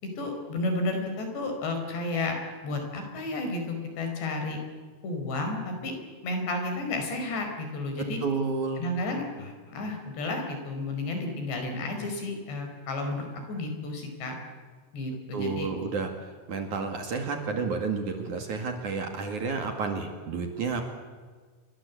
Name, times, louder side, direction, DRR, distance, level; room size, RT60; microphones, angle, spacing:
voice 1, 0.0-2.4 2.6-4.6 5.0-6.0 6.2-8.2 8.8-14.4 14.9-15.7, left 2 dB, 70° left, 5 dB, 7.0 m, -32 dB
voice 2, 8.2-8.9 15.3-20.8, right 4 dB, 50° right, 4 dB, 3.0 m, -31 dB
28.0 x 23.5 x 8.4 m, 1.5 s
omnidirectional pair, 5.1 m